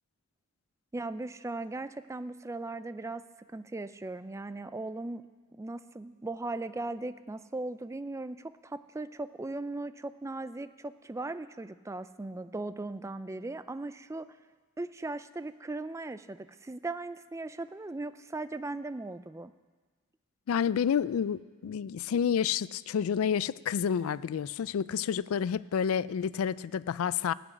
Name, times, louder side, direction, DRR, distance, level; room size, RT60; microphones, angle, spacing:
voice 1, 0.9-3.2 3.5-5.2 5.5-14.3 14.8-19.5, right 2 dB, 15° right, 13 dB, 0.3 m, -38 dB
voice 2, 20.5-27.3, left 7 dB, 70° left, 19 dB, 0.3 m, -29 dB
17.0 x 6.1 x 9.0 m, 1.4 s
head